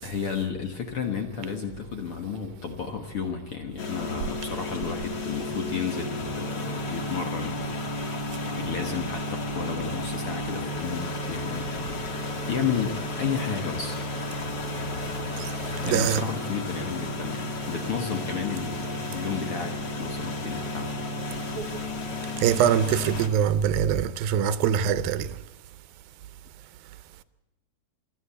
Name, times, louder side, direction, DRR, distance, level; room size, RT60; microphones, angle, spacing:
voice 1, 0.0-8.1 8.5-9.3 9.5-11.8 12.2-14.0 15.8-20.9, left 7 dB, 55° left, 1.7 m, -32 dB
sound 1, 3.8-23.3, left 1 dB, 35° left, 2.0 m, -32 dB
voice 2, 15.8-16.2 22.4-25.3, right 9 dB, 85° right, 2.5 m, -23 dB
26.5 x 12.0 x 8.2 m
omnidirectional pair, 4.1 m